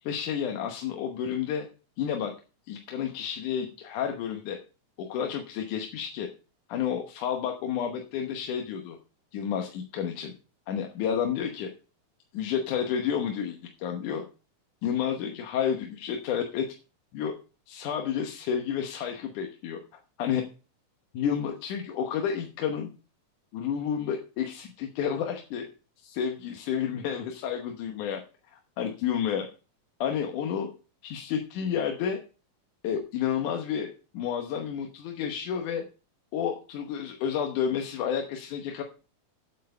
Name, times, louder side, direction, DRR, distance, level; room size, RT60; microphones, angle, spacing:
voice 1, 0.0-1.7 2.0-2.3 2.7-4.6 5.0-6.3 6.7-9.0 9.3-10.3 10.7-11.7 12.3-14.2 14.8-16.7 17.1-17.3 17.7-19.8 20.2-20.4 21.1-22.9 23.5-25.7 26.0-28.2 28.5-29.5 30.0-30.7 31.0-32.2 32.8-35.8 36.3-38.8, left 8 dB, 85° left, 4 dB, 2.6 m, -30 dB
9.3 x 7.9 x 5.4 m, 0.34 s
omnidirectional pair, 3.5 m